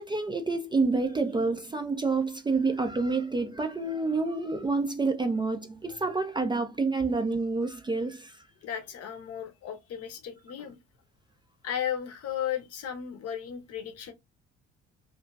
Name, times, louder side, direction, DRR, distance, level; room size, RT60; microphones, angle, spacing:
voice 1, 0.0-8.4, right 3 dB, 15° right, 0.4 m, -28 dB
voice 2, 8.6-10.8 11.6-14.1, left 9 dB, 40° left, 0.7 m, -35 dB
2.8 x 2.5 x 2.3 m
figure-of-eight pair, 45°, 36 cm